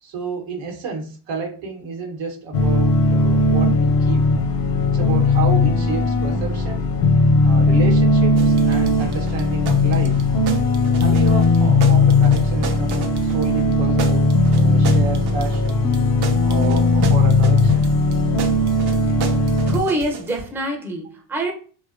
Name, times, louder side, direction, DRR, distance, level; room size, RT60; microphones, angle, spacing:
voice 1, 0.0-4.2 4.8-6.8 7.4-10.2 11.0-15.8 16.4-17.9, right 4 dB, 80° right, 0.9 m, -30 dB
sound 1, 2.5-19.8, left 2 dB, 50° left, 0.5 m, -17 dB
sound 2, 8.4-20.4, right 6 dB, 60° right, 0.6 m, -34 dB
voice 2, 19.6-21.5, right 1 dB, 5° right, 0.5 m, -25 dB
2.6 x 2.1 x 2.4 m
cardioid pair, 90°, 45 cm